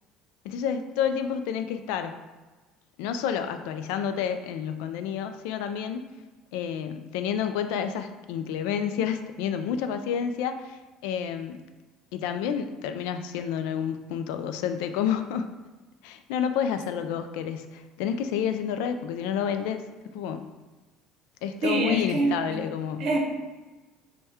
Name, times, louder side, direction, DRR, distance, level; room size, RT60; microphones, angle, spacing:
voice 1, 0.4-2.2 3.0-6.1 6.5-11.6 12.1-15.5 16.0-19.9 20.1-20.5 21.4-23.1, left 8 dB, 90° left, 8 dB, 0.3 m, -29 dB
voice 2, 21.6-22.6 23.0-23.2, right 2 dB, 55° right, 0 dB, 0.7 m, -25 dB
3.4 x 2.2 x 4.2 m, 1.2 s
cardioid pair, 150°, 0 cm